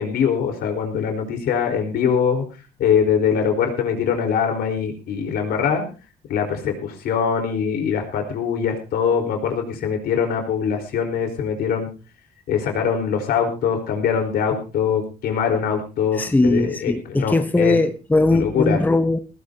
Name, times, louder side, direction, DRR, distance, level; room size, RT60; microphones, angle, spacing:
voice 1, 0.0-2.4 2.8-5.8 6.3-11.9 12.5-17.8 18.3-18.8, left 7 dB, 70° left, 4.6 m, -22 dB
voice 2, 16.2-19.2, left 2 dB, 10° left, 1.0 m, -19 dB
18.5 x 16.5 x 2.9 m
cardioid pair, 110°, 17 cm